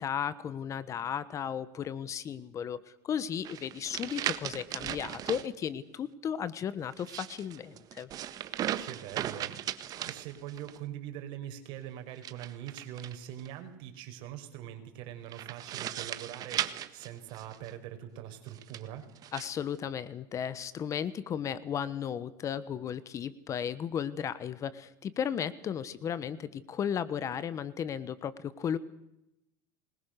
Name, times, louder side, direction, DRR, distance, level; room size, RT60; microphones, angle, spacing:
voice 1, 0.0-8.1 19.3-28.8, left 8 dB, 35° left, 17 dB, 1.2 m, -35 dB
sound 1, 3.4-5.5 6.9-10.8 12.2-13.5 15.3-17.7 18.5-19.5, right 11 dB, 40° right, 1.5 m, -37 dB
voice 2, 8.8-9.7 10.0-19.0, right 11 dB, 60° right, 6 dB, 5.0 m, -43 dB
27.0 x 21.5 x 6.6 m, 0.84 s
supercardioid pair, 130°, 10 cm